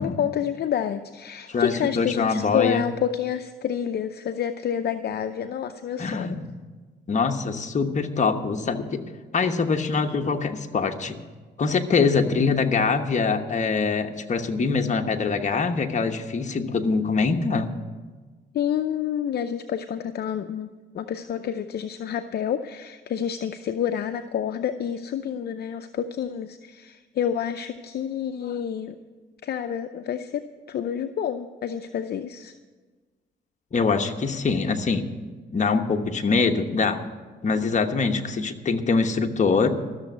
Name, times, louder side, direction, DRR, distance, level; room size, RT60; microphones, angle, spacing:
voice 1, 0.0-6.3 18.5-29.0 29.4-32.5, left 9 dB, 55° left, 8 dB, 0.6 m, -28 dB
voice 2, 1.5-2.8 6.0-6.5 7.1-9.0 9.3-11.2 11.6-17.7 33.7-35.0 35.5-37.0 37.4-39.8, left 4 dB, 35° left, 5 dB, 1.2 m, -24 dB
13.5 x 7.1 x 9.2 m, 1.4 s
cardioid pair, 90°, 20 cm